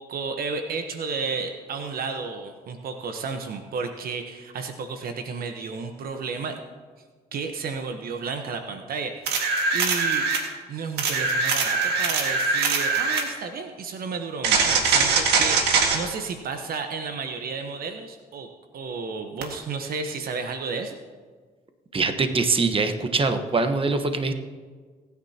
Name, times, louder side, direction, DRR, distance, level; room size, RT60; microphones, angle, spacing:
voice 1, 0.0-6.6 7.3-10.3 10.7-21.0, right 4 dB, 60° right, 6 dB, 1.2 m, -32 dB
sound 1, 9.3-10.5 11.0-13.3 14.4-16.0 19.4-19.5, right 4 dB, 80° right, 1.9 m, -22 dB
voice 2, 21.9-24.3, right 3 dB, 35° right, 7 dB, 1.3 m, -23 dB
22.5 x 9.8 x 2.9 m, 1.5 s
supercardioid pair, 70°, 17 cm